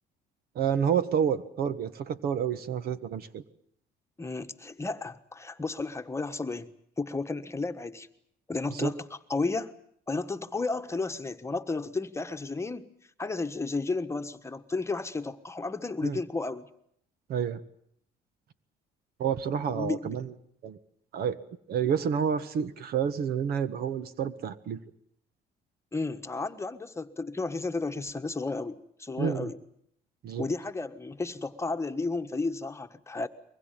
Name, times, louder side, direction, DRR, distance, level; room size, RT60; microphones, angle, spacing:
voice 1, 0.5-3.4 8.7-8.9 16.0-16.2 17.3-17.6 19.2-20.3 20.6-20.8 21.1-21.4 21.7-24.8 29.2-29.5 30.2-30.5, right 8 dB, 65° right, 13 dB, 1.5 m, -29 dB
voice 2, 4.2-6.7 7.0-8.1 8.5-9.0 9.3-9.7 10.1-12.9 13.2-16.7 19.5-20.2 25.9-29.6 30.4-33.3, left 3 dB, 15° left, 8 dB, 1.4 m, -33 dB
23.5 x 20.5 x 9.1 m, 0.68 s
cardioid pair, 110°, 17 cm